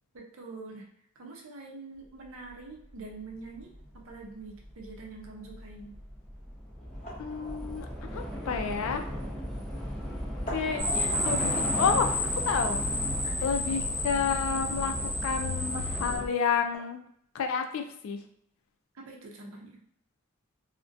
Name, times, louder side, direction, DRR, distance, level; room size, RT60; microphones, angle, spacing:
voice 1, 0.1-0.8 1.2-5.9 13.2-13.5 18.9-19.8, right 3 dB, 80° right, 0 dB, 0.6 m, -45 dB
Train / Subway metro underground, 2.9-3.0 3.3-16.3, equal, ahead, 0.3 m, -36 dB
sound 1, 3.3-16.8, equal, 35° left, 0.7 m, -48 dB
voice 2, 7.2-9.1 10.5-12.8 13.4-14.9 15.2-17.0 17.3-18.2, left 6 dB, 80° left, 5 dB, 0.3 m, -30 dB
sound 2, 10.8-16.2, left 2 dB, 50° right, 0.9 m, -31 dB
2.4 x 2.1 x 2.5 m, 0.69 s
head